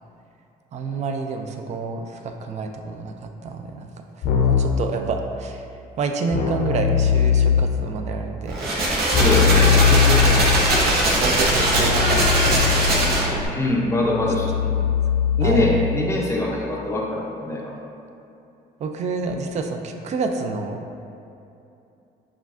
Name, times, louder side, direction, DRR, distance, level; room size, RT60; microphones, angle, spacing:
voice 1, 0.7-3.9 4.4-5.6 6.0-8.5 9.7-10.7 11.2-12.9 14.8-14.9 15.4-15.7 18.8-20.8, right 4 dB, 45° right, 5 dB, 0.4 m, -28 dB
Keyboard (musical), 4.2-4.9 6.3-7.9 9.1-16.2, left 7 dB, 60° left, 0.5 m, -21 dB
sound 1, 8.5-13.5, right 1 dB, 65° right, 0.8 m, -20 dB
voice 2, 9.1-9.8 13.5-14.5 15.4-17.7, left 2 dB, 15° left, -2 dB, 0.5 m, -23 dB
5.7 x 2.4 x 2.4 m, 2.7 s
cardioid pair, 110°, 17 cm